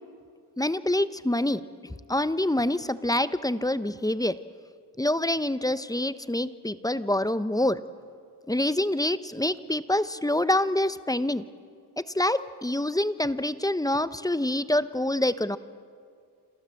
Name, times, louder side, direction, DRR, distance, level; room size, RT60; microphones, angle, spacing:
voice 1, 0.6-1.6 2.1-4.4 5.0-7.8 8.5-11.4 12.0-15.6, left 1 dB, 10° left, 13 dB, 1.0 m, -26 dB
28.0 x 27.0 x 7.8 m, 2.2 s
cardioid pair, 75°, 41 cm